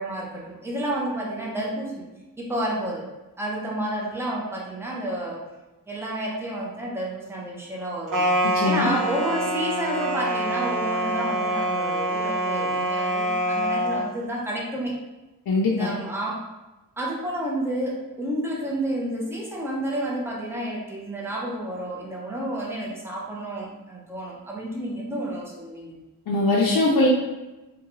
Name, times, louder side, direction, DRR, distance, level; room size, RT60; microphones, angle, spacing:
voice 1, 0.0-2.0 2.4-3.1 3.4-5.4 5.9-8.3 8.6-15.0 15.7-16.5 17.0-26.0, right 1 dB, 5° right, -4 dB, 0.6 m, -30 dB
sound 1, 8.1-14.1, right 1 dB, 65° right, 0.6 m, -25 dB
voice 2, 8.5-8.9 15.5-15.9 26.3-27.1, left 2 dB, 90° left, -4 dB, 0.5 m, -21 dB
3.6 x 2.2 x 3.0 m, 1.1 s
wide cardioid pair, 125°, 35 cm